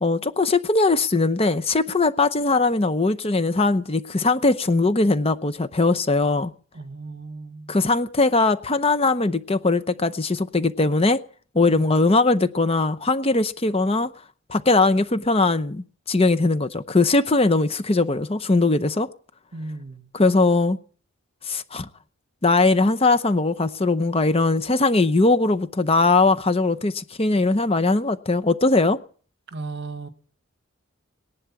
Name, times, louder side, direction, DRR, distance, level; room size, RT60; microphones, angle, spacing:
voice 1, 0.0-6.5 7.7-11.2 11.5-14.1 14.5-19.1 20.1-20.8 21.5-21.9 22.4-29.0, left 3 dB, 30° left, 0.7 m, -20 dB
voice 2, 6.7-7.8 11.7-11.8 19.5-20.1 29.5-30.1, right 3 dB, 55° right, 1.3 m, -35 dB
18.0 x 11.0 x 7.1 m
head